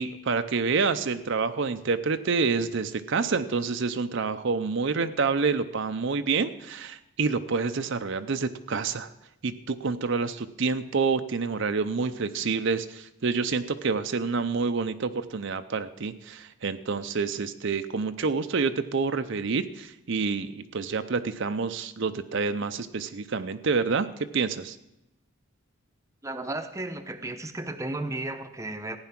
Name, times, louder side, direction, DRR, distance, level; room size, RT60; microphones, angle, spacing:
voice 1, 0.0-9.1 9.4-24.8, right 4 dB, 55° right, 9 dB, 0.6 m, -28 dB
voice 2, 26.2-29.0, right 2 dB, 15° right, 7 dB, 0.7 m, -34 dB
15.0 x 9.7 x 5.9 m, 0.87 s
head